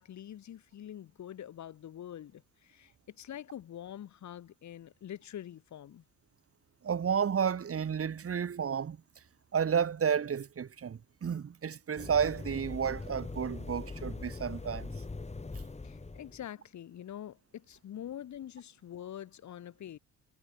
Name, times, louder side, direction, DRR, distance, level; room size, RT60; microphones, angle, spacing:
voice 1, 0.0-6.0 15.8-20.0, left 10 dB, 70° left, 7.5 m, -45 dB
voice 2, 6.8-9.0 9.5-14.9, right 7 dB, 50° right, 5.1 m, -31 dB
sound 1, 12.0-16.4, left 3 dB, 20° left, 4.2 m, -42 dB
cardioid pair, 90°, 30 cm